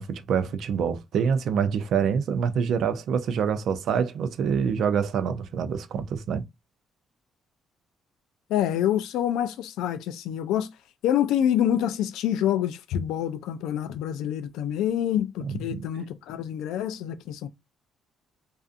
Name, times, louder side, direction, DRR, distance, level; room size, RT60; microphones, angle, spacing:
voice 1, 0.0-6.4 15.4-15.8, right 7 dB, 65° right, 0.4 m, -26 dB
voice 2, 8.5-10.7 11.0-17.5, left 10 dB, 90° left, 0.3 m, -26 dB
2.5 x 2.4 x 2.4 m
cardioid pair, 110°, 0 cm